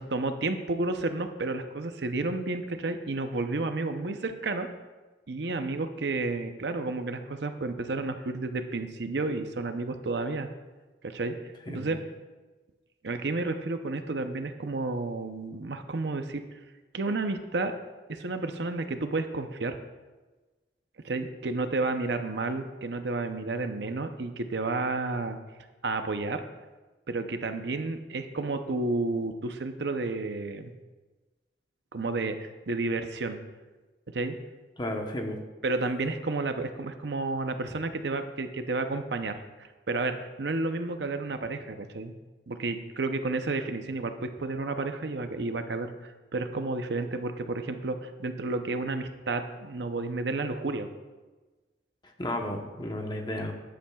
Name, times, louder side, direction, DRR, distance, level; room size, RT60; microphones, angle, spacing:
voice 1, 0.0-4.7 5.3-10.5 11.0-11.4 11.7-12.0 13.0-16.4 16.9-17.7 18.1-19.8 21.0-25.4 25.8-26.4 27.1-30.7 31.9-33.4 34.1-34.3 35.6-42.1 42.5-50.9, right 3 dB, 65° right, 8 dB, 0.7 m, -31 dB
voice 2, 34.8-35.4 52.2-53.5, left 1 dB, 25° left, 3 dB, 0.9 m, -33 dB
14.0 x 10.0 x 2.3 m, 1.2 s
head